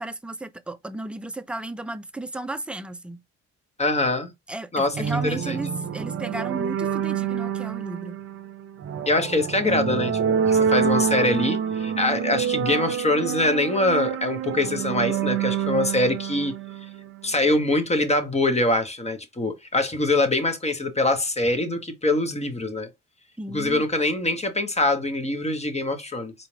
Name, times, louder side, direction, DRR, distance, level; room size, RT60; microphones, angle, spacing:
voice 1, 0.0-3.2 4.5-8.2 23.4-23.8, right 2 dB, 5° right, 0.4 m, -34 dB
voice 2, 3.8-4.3 4.7-5.0 5.2-5.6 9.1-10.2 10.5-16.5 17.2-22.9 23.5-26.3, left 2 dB, 20° left, 0.9 m, -23 dB
sound 1, 4.9-17.4, right 7 dB, 50° right, 0.7 m, -27 dB
4.1 x 2.3 x 3.2 m
cardioid pair, 90°, 30 cm